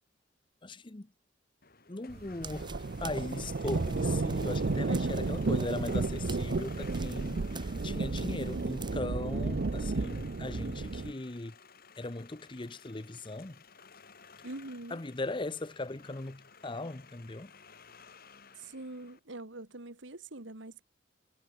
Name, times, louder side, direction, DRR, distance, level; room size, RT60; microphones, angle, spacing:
voice 1, 0.6-1.1 1.9-11.6 12.0-13.6 14.9-17.5, left 2 dB, 25° left, 0.8 m, -39 dB
sound 1, 1.6-19.2, left 5 dB, 50° left, 4.0 m, -56 dB
sound 2, 2.1-11.1, right 3 dB, 60° right, 0.6 m, -32 dB
sound 3, 2.4-9.0, right 4 dB, 25° right, 2.8 m, -49 dB
voice 2, 4.7-5.3 14.4-15.0 18.6-20.8, right 2 dB, 80° right, 2.2 m, -43 dB
head